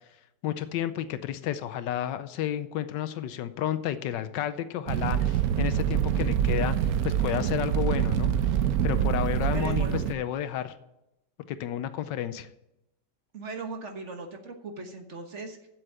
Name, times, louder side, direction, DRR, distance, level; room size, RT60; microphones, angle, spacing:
voice 1, 0.4-8.3 8.8-10.7 11.5-12.5, left 11 dB, 85° left, 12 dB, 1.3 m, -31 dB
Fire, 4.9-10.1, right 9 dB, 65° right, 1.0 m, -26 dB
voice 2, 9.3-10.0 12.3-12.4 13.3-15.7, right 3 dB, 45° right, 4 dB, 1.4 m, -39 dB
7.9 x 7.8 x 8.6 m, 0.88 s
omnidirectional pair, 1.9 m